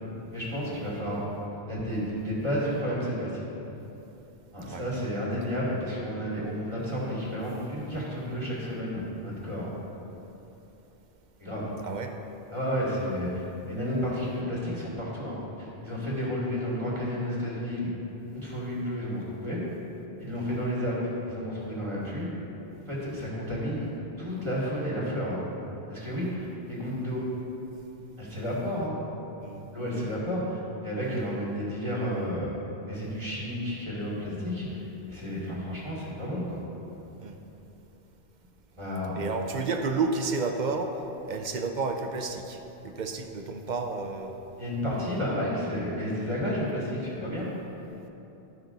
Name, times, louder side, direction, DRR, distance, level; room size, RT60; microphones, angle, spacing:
voice 1, 0.3-1.2 1.7-3.4 4.5-9.7 11.4-11.6 12.5-17.9 18.3-19.6 20.2-21.0 21.2-22.3 22.9-23.9 24.2-25.4 25.9-27.2 28.2-29.0 29.7-32.5 32.9-36.6 38.8-39.3 44.6-47.5, equal, 25° right, -7 dB, 2.3 m, -31 dB
voice 2, 39.2-40.9 41.2-44.4, right 4 dB, 50° right, 5 dB, 0.7 m, -31 dB
12.5 x 6.0 x 3.9 m, 3.0 s
omnidirectional pair, 1.1 m